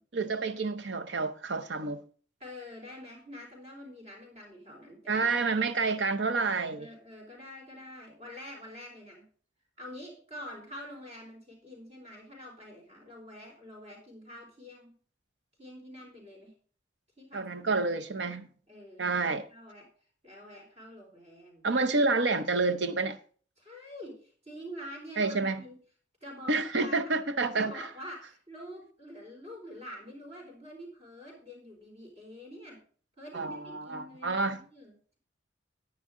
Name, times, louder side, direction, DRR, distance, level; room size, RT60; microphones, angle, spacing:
voice 1, 0.1-2.0 5.1-6.9 17.3-18.5 19.0-19.5 21.6-23.2 25.2-25.6 26.5-27.9 33.3-34.6, right 3 dB, 70° right, 0.8 m, -29 dB
voice 2, 2.4-5.3 6.8-9.3 9.8-15.0 15.6-16.5 17.2-17.7 18.7-19.9 20.2-21.7 23.6-25.8 26.2-27.1 27.6-32.8 33.2-35.2, equal, 35° right, 4.2 m, -46 dB
10.0 x 9.6 x 3.7 m
head